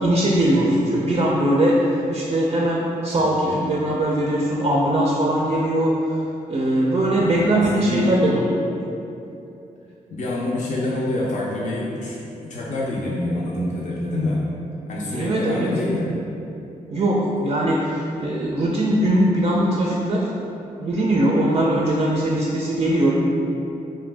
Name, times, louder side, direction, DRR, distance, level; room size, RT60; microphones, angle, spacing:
voice 1, 0.0-6.2 6.5-8.4 15.1-15.7 16.9-20.3 20.8-23.2, right 1 dB, 40° right, -4 dB, 0.4 m, -20 dB
voice 2, 3.2-3.6 7.2-8.1 10.1-14.4 14.9-16.1, left 1 dB, 55° left, -5 dB, 0.4 m, -27 dB
2.5 x 2.1 x 3.3 m, 2.8 s
cardioid pair, 55°, 15 cm